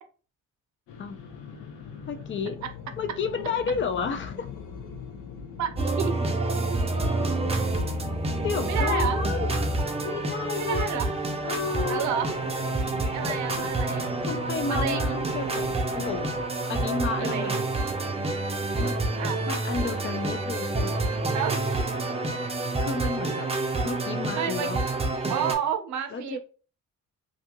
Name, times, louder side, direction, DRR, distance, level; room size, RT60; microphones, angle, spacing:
sound 1, 0.9-16.5, left 6 dB, 85° left, 0.6 m, -42 dB
voice 1, 2.1-2.6 3.0-4.5 8.4-9.5 10.0-10.9 11.4-12.1 13.3-13.7 14.2-16.3 16.7-17.7 18.8-19.0 19.5-21.0 22.8-23.5 23.8-24.8 26.1-26.4, left 5 dB, 40° left, 0.4 m, -31 dB
voice 2, 5.6-6.2 8.7-9.2 10.6-11.1 11.9-12.7 13.0-14.2 14.6-15.2 17.1-17.9 19.2-19.4 21.3-21.6 24.3-24.8 25.3-26.4, right 8 dB, 65° right, 0.6 m, -31 dB
sound 2, 5.8-25.5, right 2 dB, 20° right, 0.5 m, -28 dB
2.6 x 2.3 x 2.9 m
cardioid pair, 90°, 30 cm